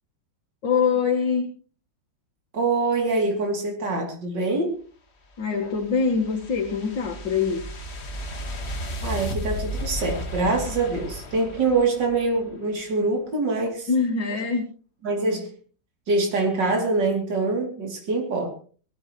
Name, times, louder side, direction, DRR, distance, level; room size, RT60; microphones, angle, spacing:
voice 1, 0.6-1.5 5.4-7.6 13.9-14.6, left 5 dB, 75° left, 0 dB, 2.3 m, -23 dB
voice 2, 2.5-4.8 9.0-13.9 15.0-15.5 16.1-18.5, right 3 dB, 70° right, 1 dB, 3.6 m, -24 dB
sound 1, 5.3-12.5, equal, 40° left, 1.6 m, -34 dB
23.5 x 15.0 x 3.1 m, 0.41 s
omnidirectional pair, 2.0 m